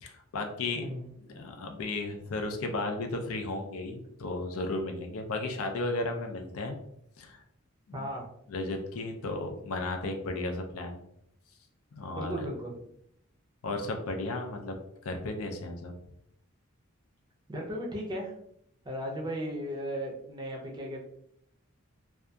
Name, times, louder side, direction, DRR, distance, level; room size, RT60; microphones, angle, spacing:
voice 1, 0.0-0.9 1.2-6.8 7.2-7.4 7.9-8.1 8.5-11.0 11.9-12.3 13.6-16.0, left 2 dB, 75° left, 4 dB, 0.4 m, -34 dB
voice 2, 0.7-1.1 7.9-8.3 12.2-12.9 17.5-18.3 18.8-21.0, equal, 20° right, -2 dB, 0.4 m, -36 dB
2.6 x 2.3 x 2.2 m, 0.73 s
head